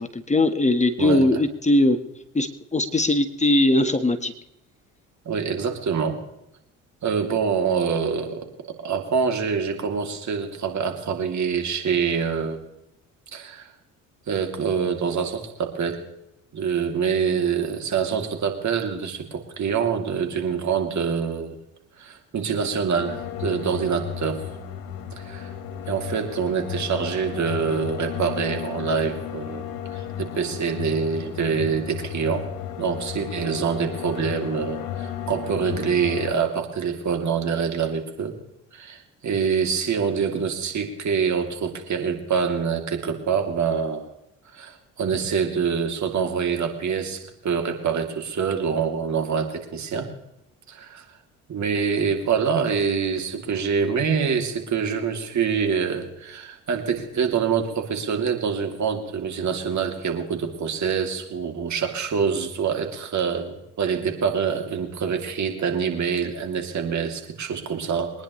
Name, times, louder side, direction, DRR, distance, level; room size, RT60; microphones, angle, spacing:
voice 1, 0.0-2.0 2.3-4.3, left 1 dB, 20° left, 8 dB, 1.4 m, -20 dB
voice 2, 5.2-6.2 7.0-8.4 8.8-12.6 13.3-13.7 14.3-16.0 16.5-21.6 22.0-24.4 25.2-25.5 25.9-29.6 29.9-32.5 32.8-38.4 38.7-44.1 44.5-50.1 50.7-51.1 51.5-68.1, right 6 dB, 50° right, 4 dB, 3.0 m, -25 dB
sound 1, 23.0-36.3, left 9 dB, 65° left, 2.1 m, -34 dB
23.5 x 10.5 x 3.2 m, 0.85 s
hypercardioid pair, 65°, 37 cm